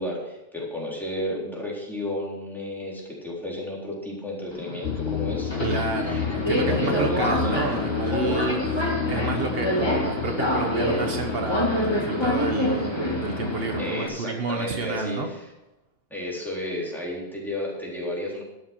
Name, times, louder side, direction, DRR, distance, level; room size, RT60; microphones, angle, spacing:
voice 1, 0.0-5.7 6.0-6.2 6.5-7.6 13.8-15.5 16.1-18.4, left 1 dB, ahead, -5 dB, 3.8 m, -32 dB
Subway metro underground, 4.5-14.1, left 1 dB, 25° left, 2.3 m, -27 dB
sound 1, 4.8-13.8, left 8 dB, 90° left, 0.9 m, -31 dB
voice 2, 5.6-15.3, right 4 dB, 70° right, 4 dB, 1.3 m, -30 dB
12.0 x 8.2 x 6.0 m, 0.98 s
omnidirectional pair, 1.0 m